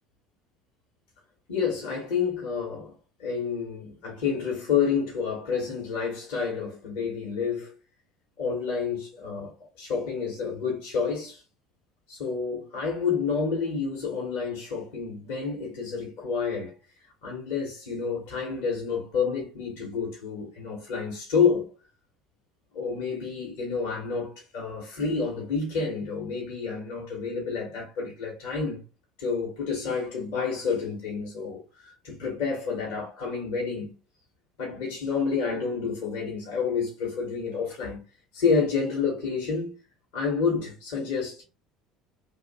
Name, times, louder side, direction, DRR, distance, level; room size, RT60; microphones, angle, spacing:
voice 1, 1.5-2.9 3.2-7.7 8.4-11.4 12.1-16.7 17.2-21.7 22.7-28.8 29.2-33.9 34.6-38.0 38.3-39.7 40.1-41.4, left 5 dB, 65° left, 1.1 m, -29 dB
2.8 x 2.4 x 4.0 m
figure-of-eight pair, 65°, 0 cm